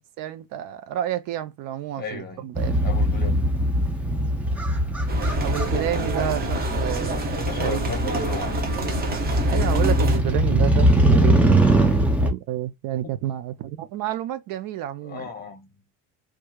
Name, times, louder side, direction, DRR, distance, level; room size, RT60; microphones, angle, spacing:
voice 1, 0.2-2.8 5.4-7.9 9.5-11.4 12.2-15.3, right 12 dB, 70° right, 0.6 m, -30 dB
voice 2, 2.0-2.5 2.8-3.6 7.3-8.7 15.0-15.8, left 5 dB, 25° left, 0.7 m, -35 dB
Motorcycle, 2.5-12.3, right 1 dB, 5° right, 0.3 m, -21 dB
sound 1, 5.1-10.2, right 2 dB, 25° right, 0.8 m, -28 dB
2.9 x 2.4 x 2.3 m
cardioid pair, 145°, 35 cm